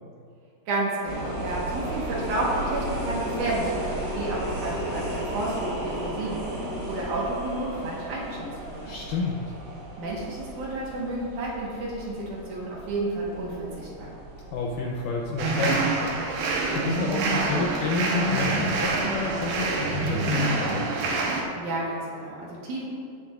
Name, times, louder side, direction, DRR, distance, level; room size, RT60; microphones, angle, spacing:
voice 1, 0.7-6.4 6.9-9.0 10.0-14.2 21.5-22.9, right 2 dB, 60° right, -5 dB, 2.6 m, -31 dB
sound 1, 1.0-20.0, right 1 dB, 45° right, 1.3 m, -35 dB
voice 2, 8.9-9.4 14.5-16.2 16.7-21.0, left 3 dB, 75° left, -1 dB, 1.9 m, -29 dB
sound 2, 15.4-21.4, right 3 dB, 85° right, 3.2 m, -26 dB
17.0 x 7.2 x 2.5 m, 2.3 s
omnidirectional pair, 4.5 m